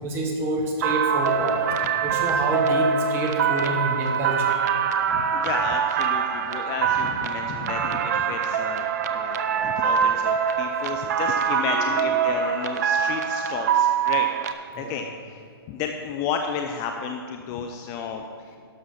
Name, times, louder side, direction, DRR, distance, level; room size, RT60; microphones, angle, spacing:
voice 1, 0.0-1.8 2.0-4.7 11.6-12.2 14.7-15.0, right 1 dB, 20° right, 2 dB, 1.4 m, -28 dB
sound 1, 0.8-14.5, right 7 dB, 40° right, 0.7 m, -24 dB
voice 2, 5.1-14.3 14.7-15.4 15.7-18.2, left 6 dB, 25° left, 5 dB, 0.5 m, -32 dB
12.0 x 6.2 x 5.7 m, 2.4 s
hypercardioid pair, 135°, 13 cm